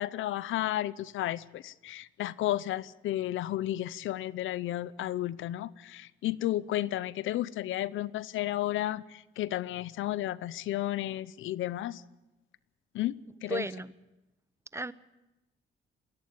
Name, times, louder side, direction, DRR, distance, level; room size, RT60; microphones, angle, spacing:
voice 1, 0.0-12.0 12.9-13.7, left 14 dB, 80° left, 20 dB, 0.7 m, -33 dB
voice 2, 13.5-14.0 14.7-14.9, right 2 dB, 15° right, 17 dB, 0.8 m, -34 dB
21.0 x 16.5 x 8.6 m, 0.99 s
cardioid pair, 90°, 20 cm